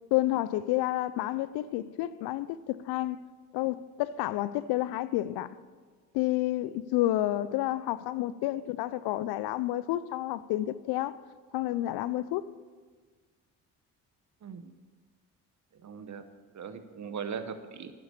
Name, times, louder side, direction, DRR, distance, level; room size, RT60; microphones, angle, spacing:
voice 1, 0.1-3.2 3.5-5.6 6.1-11.2 11.5-12.5, left 15 dB, 80° left, 0.5 m, -30 dB
voice 2, 14.4-14.7 15.8-16.2 16.5-17.9, right 6 dB, 50° right, 1.0 m, -39 dB
9.7 x 7.0 x 6.9 m
supercardioid pair, 60°, 38 cm